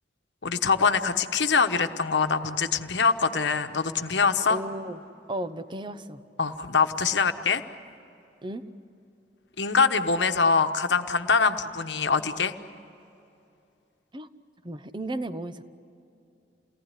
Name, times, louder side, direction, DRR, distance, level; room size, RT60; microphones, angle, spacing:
voice 1, 0.4-4.6 6.4-7.6 9.6-12.5, left 5 dB, 80° left, 8 dB, 1.1 m, -24 dB
voice 2, 4.5-5.0 5.3-6.2 8.4-8.6 14.1-14.3 14.6-15.7, right 1 dB, 25° right, 11 dB, 0.9 m, -34 dB
28.5 x 18.5 x 10.0 m, 2.7 s
head